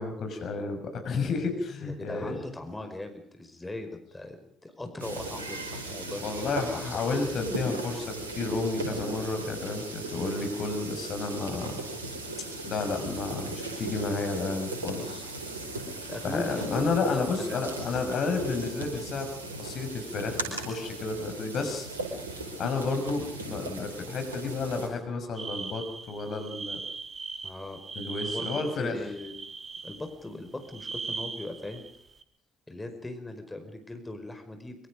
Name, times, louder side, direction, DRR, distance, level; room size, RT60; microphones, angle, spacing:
voice 1, 0.0-2.4 6.2-11.8 12.6-15.2 16.2-19.3 19.6-21.9 22.6-26.8 28.0-28.9, left 3 dB, 55° left, 6 dB, 6.1 m, -31 dB
voice 2, 1.8-4.4 4.6-6.8 16.1-17.6 27.4-27.8 28.3-28.5 28.8-29.4 29.8-31.9 32.7-34.9, left 2 dB, 15° left, 6 dB, 5.2 m, -39 dB
sound 1, 5.0-24.9, right 2 dB, 85° right, 5.0 m, -37 dB
sound 2, 25.3-30.3 30.6-32.2, right 4 dB, 35° right, 3.1 m, -39 dB
25.0 x 25.0 x 5.2 m, 0.64 s
figure-of-eight pair, 50°, 0 cm